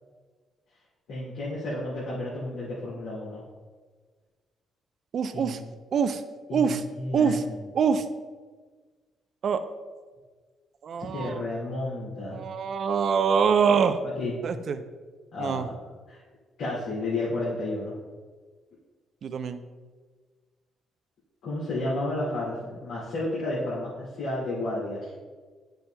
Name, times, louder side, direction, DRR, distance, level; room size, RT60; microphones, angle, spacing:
voice 1, 1.1-3.4 5.3-5.6 6.5-7.4 11.1-12.4 14.2-14.4 15.3-15.8 16.1-16.2 16.6-18.0 21.4-25.1, left 2 dB, 85° left, -9 dB, 2.2 m, -31 dB
voice 2, 5.1-5.6 5.9-6.2 6.5-6.8 7.1-7.4 7.7-8.1 9.4-9.7 10.8-11.4 12.3-14.0 14.4-14.8 15.4-15.7 19.2-19.6, right 6 dB, 60° right, 10 dB, 0.5 m, -24 dB
9.1 x 6.9 x 2.2 m, 1.4 s
cardioid pair, 90°, 0 cm